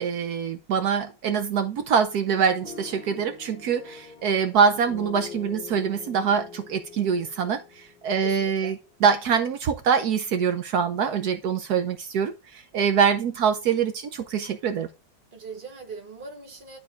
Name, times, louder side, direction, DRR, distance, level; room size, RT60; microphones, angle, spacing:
voice 1, 0.0-14.9, right 6 dB, 75° right, 1.4 m, -24 dB
sound 1, 2.6-8.7, left 5 dB, 30° left, 1.2 m, -43 dB
voice 2, 8.2-8.7 15.3-16.8, right 4 dB, 35° right, 1.7 m, -40 dB
11.5 x 3.8 x 4.4 m
omnidirectional pair, 1.7 m